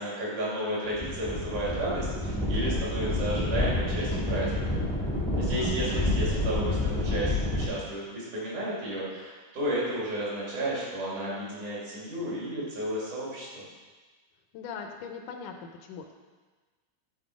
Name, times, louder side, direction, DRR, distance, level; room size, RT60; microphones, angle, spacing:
voice 1, 0.0-4.8 5.4-13.6, right 1 dB, 70° right, -7 dB, 4.2 m, -33 dB
sound 1, 0.9-7.7, left 1 dB, 5° left, 0.4 m, -29 dB
voice 2, 5.5-6.1 14.5-15.5 15.8-16.1, left 6 dB, 80° left, 4 dB, 2.1 m, -40 dB
11.5 x 4.3 x 4.9 m, 1.3 s
omnidirectional pair, 3.7 m